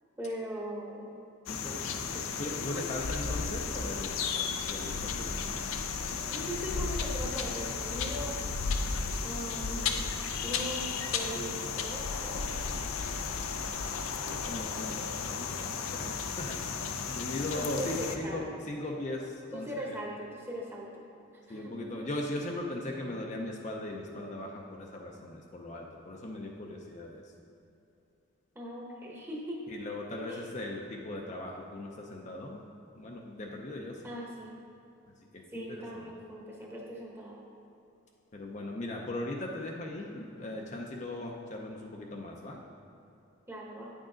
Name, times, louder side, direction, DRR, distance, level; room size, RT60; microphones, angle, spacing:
voice 1, 0.2-1.1 2.0-2.3 3.2-3.5 6.3-8.5 9.2-10.0 10.4-12.5 15.1-15.2 17.5-18.4 19.5-21.1 21.5-21.9 28.5-29.7 30.3-30.4 34.0-34.6 35.5-37.4 43.5-43.9, right 1 dB, 10° right, -2 dB, 0.9 m, -40 dB
sound 1, 1.5-18.2, left 5 dB, 80° left, 0.5 m, -34 dB
voice 2, 1.5-5.4 14.2-19.9 21.5-27.2 29.7-32.6 32.9-34.1 35.3-36.0 38.3-42.6, left 1 dB, 35° left, 0 dB, 0.5 m, -39 dB
9.1 x 6.2 x 3.8 m, 2.8 s
head